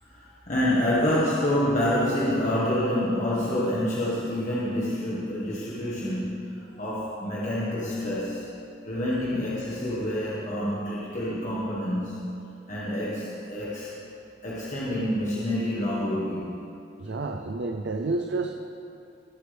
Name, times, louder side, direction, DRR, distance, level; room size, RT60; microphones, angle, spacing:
voice 1, 0.0-8.5 8.9-12.4 12.7-13.9 14.4-16.6, left 1 dB, 45° left, -7 dB, 1.6 m, -27 dB
voice 2, 17.0-18.7, right 3 dB, 80° right, 4 dB, 0.6 m, -30 dB
21.0 x 8.0 x 3.5 m, 2.7 s
head